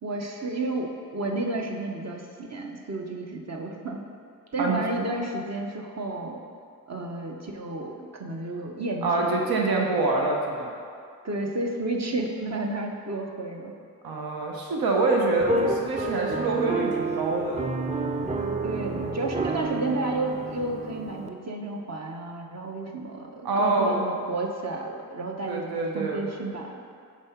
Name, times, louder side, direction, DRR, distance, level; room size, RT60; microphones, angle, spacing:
voice 1, 0.0-4.0 4.5-6.4 6.9-9.3 11.2-13.7 18.6-25.7 25.9-26.8, right 2 dB, 50° right, 1 dB, 0.7 m, -32 dB
voice 2, 9.0-10.7 14.0-17.7 23.4-24.0 25.5-26.2, right 3 dB, 90° right, 0 dB, 0.7 m, -25 dB
sound 1, 15.4-21.3, right 2 dB, 20° right, 0.5 m, -30 dB
5.3 x 3.6 x 5.5 m, 2.3 s
cardioid pair, 45°, 35 cm